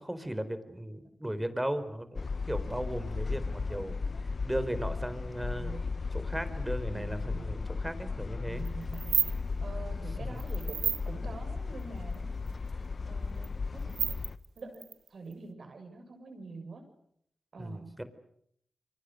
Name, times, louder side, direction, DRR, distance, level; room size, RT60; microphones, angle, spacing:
voice 1, 0.0-5.8 6.1-8.7 10.3-10.4 17.6-18.0, right 1 dB, 10° right, 12 dB, 4.0 m, -36 dB
sound 1, 2.1-14.4, left 4 dB, 55° left, 1.0 m, -35 dB
voice 2, 5.5-5.8 6.8-7.5 8.4-9.2 9.6-12.4 12.8-14.2 14.5-14.8 15.1-16.9 17.5-18.1, right 3 dB, 65° right, 6 dB, 6.9 m, -46 dB
sound 2, 8.6-8.7 8.9-9.3 10.4-11.0 12.1-12.2 12.5-12.6 13.4-13.5 13.8-15.3, right 8 dB, 90° right, 1.2 m, -30 dB
30.0 x 24.0 x 6.6 m, 0.70 s
cardioid pair, 50°, 0 cm